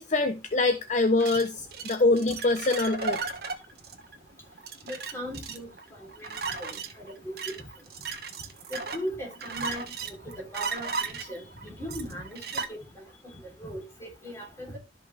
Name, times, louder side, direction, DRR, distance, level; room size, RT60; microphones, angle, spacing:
voice 1, 0.0-3.2, left 2 dB, 40° left, 0.7 m, -24 dB
sound 1, 1.2-12.7, right 4 dB, 60° right, 1.4 m, -36 dB
voice 2, 4.8-5.7 6.2-7.6 8.7-12.4 12.7-13.0 13.6-14.8, equal, 15° left, 3.4 m, -38 dB
12.5 x 5.6 x 3.3 m
head